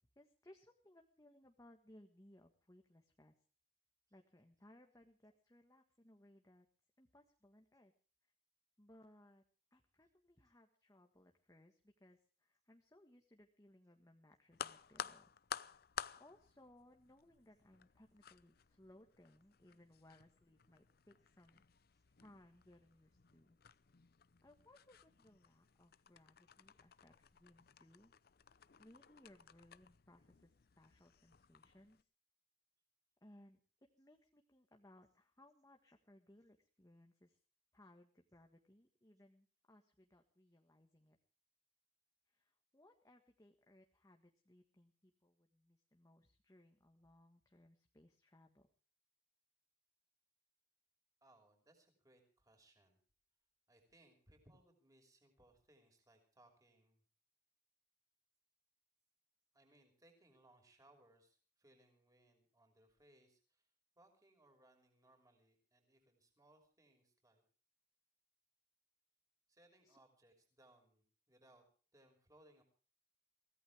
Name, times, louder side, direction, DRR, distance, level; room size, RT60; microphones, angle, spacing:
voice 1, 0.2-3.3 4.1-6.7 7.0-7.9 8.8-9.4 9.7-15.3 16.2-21.6 22.2-23.6 24.4-28.1 28.8-32.1 33.2-33.6 34.0-37.4 37.7-41.2 42.3-48.7 69.8-70.0, left 1 dB, 20° left, 3 dB, 1.6 m, -65 dB
sound 1, 14.5-32.0, left 7 dB, 60° left, 0.7 m, -54 dB
voice 2, 51.2-53.0 53.7-57.0 59.5-63.7 64.0-67.4 69.5-71.6 71.9-72.6, right 1 dB, 20° right, 4 dB, 5.8 m, -69 dB
23.5 x 17.0 x 3.5 m, 0.39 s
head